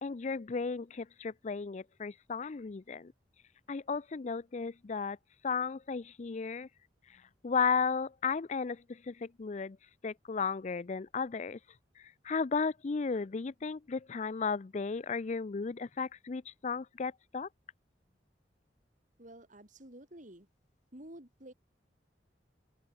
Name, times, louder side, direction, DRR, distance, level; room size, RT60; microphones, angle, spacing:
voice 1, 0.0-3.1 3.7-5.2 5.4-6.7 7.4-9.8 10.0-11.6 12.2-17.5, left 5 dB, 40° left, 0.5 m, -34 dB
voice 2, 19.2-20.5 20.9-21.5, right 1 dB, 45° right, 3.9 m, -51 dB
open air
head